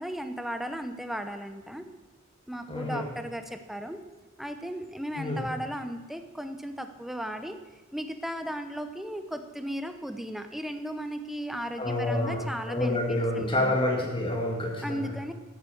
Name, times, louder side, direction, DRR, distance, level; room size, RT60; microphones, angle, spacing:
voice 1, 0.0-1.9 2.5-4.0 4.4-7.6 7.9-13.8 14.8-15.3, equal, ahead, 8 dB, 0.9 m, -36 dB
voice 2, 2.7-3.0 5.2-5.5 11.8-15.1, left 1 dB, 25° left, 1 dB, 1.6 m, -28 dB
14.0 x 8.2 x 7.0 m, 1.2 s
head